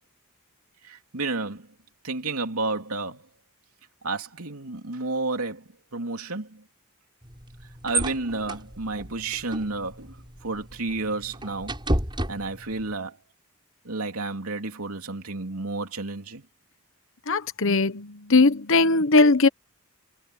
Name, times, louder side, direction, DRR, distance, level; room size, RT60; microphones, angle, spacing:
voice 1, 0.8-1.7 2.0-3.2 4.0-5.6 5.9-6.6 7.8-11.7 12.3-13.2 13.8-16.4, right 3 dB, 80° right, 3.0 m, -31 dB
sound 1, 7.2-13.0, right 1 dB, 20° right, 6.6 m, -33 dB
voice 2, 17.3-19.5, left 3 dB, 60° left, 1.2 m, -19 dB
head